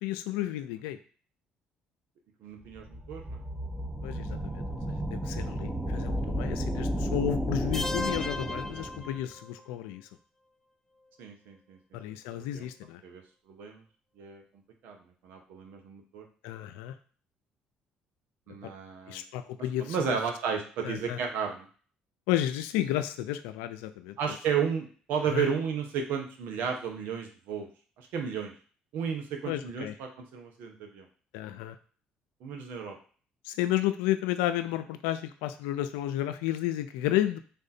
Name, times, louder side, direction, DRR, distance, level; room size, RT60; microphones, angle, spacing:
voice 1, 0.0-1.0 4.0-10.1 11.9-13.0 16.4-16.9 19.1-20.2 20.8-21.2 22.3-24.4 25.3-25.5 29.5-29.9 31.3-31.8 33.4-37.4, left 13 dB, 85° left, 10 dB, 0.4 m, -32 dB
voice 2, 2.4-3.4 11.2-11.8 12.3-12.7 13.0-13.2 13.5-13.8 14.2-14.4 14.8-15.0 15.2-16.2 18.5-19.2 19.8-21.7 24.2-27.7 28.0-28.5 28.9-31.1 32.4-33.0, right 7 dB, 75° right, 3 dB, 0.9 m, -33 dB
sound 1, 2.7-9.2, equal, 5° right, 0.8 m, -33 dB
sound 2, 7.7-9.7, left 2 dB, 15° left, 0.4 m, -36 dB
3.5 x 2.6 x 4.2 m, 0.41 s
supercardioid pair, 65°, 3 cm